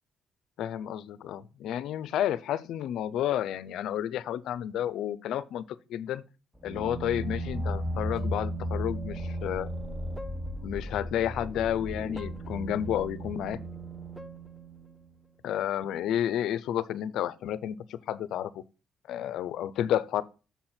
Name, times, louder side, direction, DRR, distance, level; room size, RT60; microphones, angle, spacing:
voice 1, 0.6-5.6 5.9-6.2 6.6-9.7 10.6-13.6 15.4-18.6 19.1-20.2, left 11 dB, 80° left, 0.5 m, -31 dB
sound 1, 6.6-15.1, right 1 dB, ahead, 0.9 m, -35 dB
7.0 x 4.4 x 5.7 m
cardioid pair, 90°, 0 cm